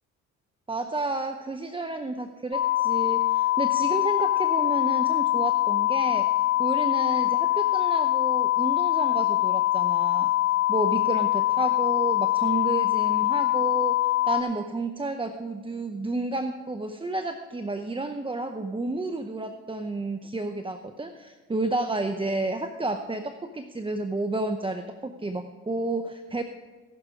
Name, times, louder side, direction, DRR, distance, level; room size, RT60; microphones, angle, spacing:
voice 1, 0.7-10.3 10.7-26.4, right 2 dB, 15° right, 7 dB, 0.7 m, -31 dB
sound 1, 2.5-14.4, left 16 dB, 50° left, 0.9 m, -23 dB
16.5 x 6.5 x 4.9 m, 1.3 s
supercardioid pair, 60°, 33 cm